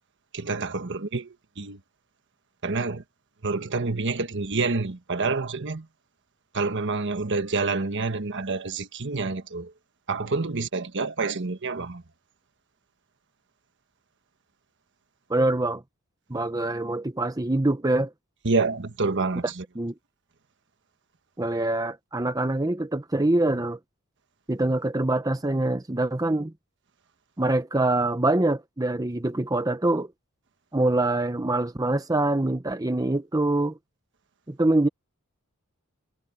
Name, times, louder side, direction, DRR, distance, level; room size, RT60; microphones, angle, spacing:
voice 1, 0.3-1.3 1.6-1.8 2.6-3.0 3.4-5.8 6.5-9.7 10.1-12.0 18.4-19.4, right 3 dB, 55° right, 1.3 m, -27 dB
voice 2, 15.3-15.8 16.3-18.1 19.7-19.9 21.4-23.8 24.5-26.5 27.4-30.1 30.7-33.8 34.5-34.9, right 2 dB, 15° right, 0.8 m, -24 dB
head